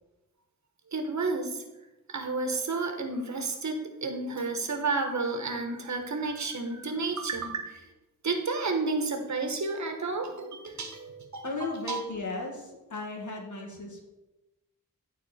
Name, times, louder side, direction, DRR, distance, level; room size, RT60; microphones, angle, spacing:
voice 1, 0.9-1.6 2.1-7.8 8.2-12.0, right 3 dB, 60° right, 5 dB, 1.3 m, -31 dB
voice 2, 11.4-14.1, left 3 dB, 65° left, 1 dB, 1.9 m, -36 dB
11.5 x 4.1 x 4.3 m, 1.0 s
cardioid pair, 65°, 33 cm